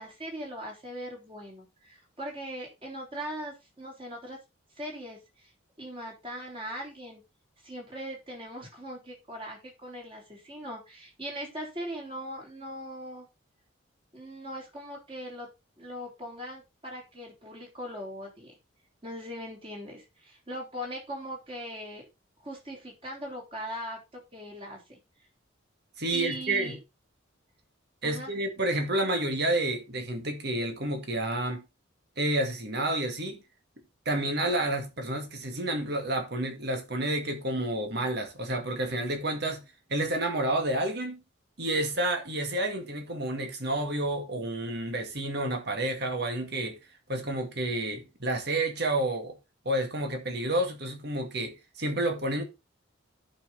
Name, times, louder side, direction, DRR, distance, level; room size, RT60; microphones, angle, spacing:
voice 1, 0.0-4.4 4.8-5.5 5.8-7.2 7.6-13.3 14.1-15.5 15.8-18.5 19.0-22.1 22.4-25.0 26.1-26.8 28.0-28.3, equal, 25° right, 3.8 m, -40 dB
voice 2, 26.0-26.8 28.0-31.6 32.2-33.4 34.1-39.6 39.9-41.2 41.6-46.8 47.1-49.4 49.7-52.4, right 1 dB, 55° right, 2.0 m, -30 dB
11.0 x 5.8 x 3.9 m
head